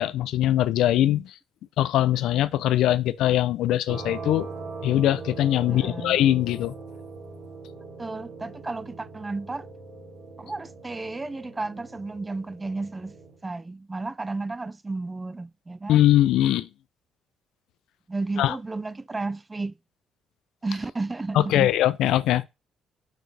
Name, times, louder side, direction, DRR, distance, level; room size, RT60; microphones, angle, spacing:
voice 1, 0.0-1.3 1.8-4.5 4.8-6.7 15.9-16.7 18.4-18.5 21.3-22.4, left 13 dB, 80° left, 0.5 m, -21 dB
sound 1, 3.9-13.4, right 3 dB, 60° right, 3.0 m, -41 dB
voice 2, 5.7-6.2 8.0-9.7 10.4-13.2 13.4-16.0 18.1-19.7 20.6-21.7, right 3 dB, 15° right, 0.4 m, -33 dB
6.1 x 4.7 x 3.3 m
cardioid pair, 130°, 0 cm